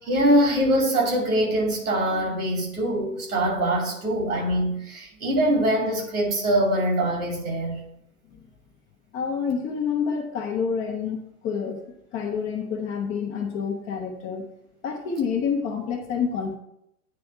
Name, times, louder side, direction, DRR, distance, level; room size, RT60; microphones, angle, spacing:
voice 1, 0.0-7.8, right 1 dB, 70° right, 0 dB, 2.7 m, -23 dB
voice 2, 9.1-11.8 12.1-14.5 14.8-16.6, left 6 dB, 25° left, 2 dB, 1.0 m, -28 dB
9.5 x 3.4 x 5.4 m, 0.78 s
figure-of-eight pair, 105°, 46 cm